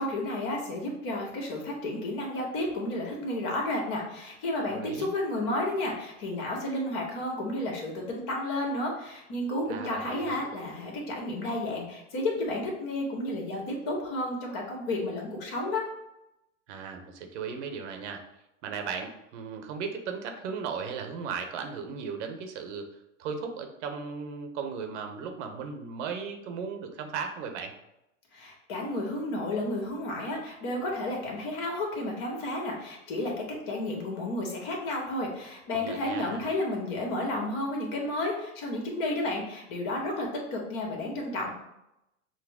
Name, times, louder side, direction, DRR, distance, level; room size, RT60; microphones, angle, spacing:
voice 1, 0.0-15.9 28.3-41.5, left 1 dB, 50° left, 0 dB, 1.6 m, -32 dB
voice 2, 4.7-5.1 9.7-10.4 16.7-18.2 18.6-22.8 23.2-27.7 35.7-36.4, right 6 dB, 60° right, 5 dB, 0.9 m, -36 dB
6.3 x 2.1 x 3.6 m, 0.87 s
hypercardioid pair, 100°, 40 cm